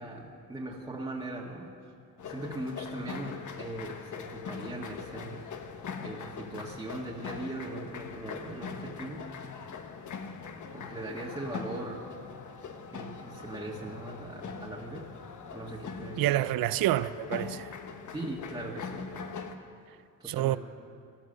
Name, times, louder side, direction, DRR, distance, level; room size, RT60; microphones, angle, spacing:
voice 1, 0.0-1.9 2.3-5.4 6.0-9.2 10.7-12.0 12.9-15.1 15.5-16.4 18.1-19.4 20.2-20.6, right 2 dB, 10° right, 1.7 m, -40 dB
sound 1, 2.2-19.5, left 5 dB, 55° left, 1.2 m, -42 dB
voice 2, 16.2-17.7 20.2-20.6, right 15 dB, 80° right, 0.5 m, -28 dB
18.0 x 11.0 x 6.5 m
cardioid pair, 100°, 35 cm